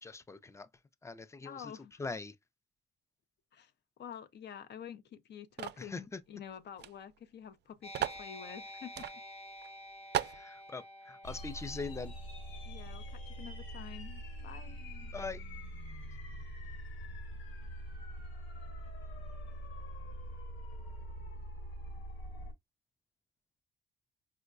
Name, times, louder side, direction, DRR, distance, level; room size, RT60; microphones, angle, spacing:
voice 1, 0.0-0.7 1.0-1.7 2.0-2.3 5.8-6.2 10.2-12.1 15.1-15.4, left 4 dB, 15° left, 0.4 m, -42 dB
voice 2, 1.4-2.0 3.5-3.7 4.0-9.1 12.7-14.9, left 8 dB, 60° left, 0.6 m, -48 dB
sound 1, 5.6-5.9 6.8-6.9 7.2-7.3 7.9-8.2 9.0-9.1 9.6-9.7 10.1-10.4, right 11 dB, 60° right, 0.4 m, -35 dB
sound 2, 7.8-14.9, left 1 dB, 30° left, 0.9 m, -51 dB
sound 3, 11.2-22.5, equal, 80° left, 1.3 m, -44 dB
4.5 x 2.1 x 2.5 m
cardioid pair, 90°, 20 cm